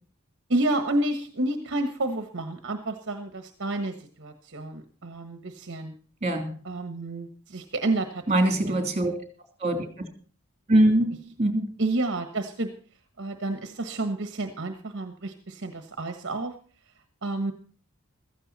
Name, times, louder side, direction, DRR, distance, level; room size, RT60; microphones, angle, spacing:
voice 1, 0.5-5.9 6.7-8.2 8.6-8.8 11.8-12.7 13.2-16.5 17.2-17.5, right 2 dB, 55° right, 7 dB, 1.4 m, -30 dB
voice 2, 6.2-6.5 8.3-9.1 9.6-9.8 10.7-11.8, right 1 dB, 30° right, 6 dB, 3.1 m, -23 dB
15.5 x 14.5 x 4.2 m, 0.39 s
head